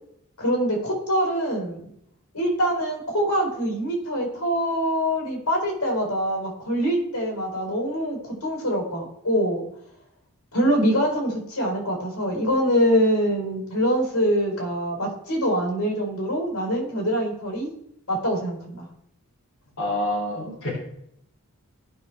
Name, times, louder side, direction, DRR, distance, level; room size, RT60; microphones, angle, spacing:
voice 1, 0.4-1.8 2.3-9.6 10.5-17.7 18.1-18.9, equal, 85° left, 0 dB, 4.2 m, -24 dB
voice 2, 19.8-20.7, left 1 dB, 65° left, -7 dB, 3.3 m, -27 dB
17.5 x 6.1 x 3.3 m, 0.74 s
head